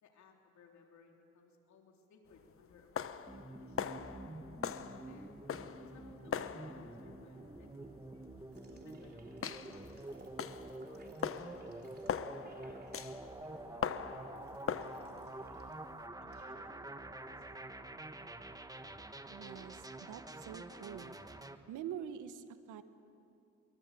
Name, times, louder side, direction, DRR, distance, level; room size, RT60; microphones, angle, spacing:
voice 1, 0.0-4.0 5.1-5.5 5.9-7.9 8.6-11.1 12.0-13.2 13.5-15.7 16.2-17.7, left 4 dB, 70° left, 2 dB, 3.6 m, -63 dB
sound 1, 2.3-16.1, left 7 dB, 45° left, 1.0 m, -42 dB
sound 2, 3.3-21.6, right 2 dB, 10° right, 1.3 m, -48 dB
sound 3, 8.5-15.8 16.1-16.7, right 3 dB, 35° right, 3.9 m, -60 dB
voice 2, 19.3-21.1 21.7-22.8, right 9 dB, 85° right, 10 dB, 1.5 m, -45 dB
25.0 x 24.0 x 8.5 m, 2.5 s
cardioid pair, 90°, 30 cm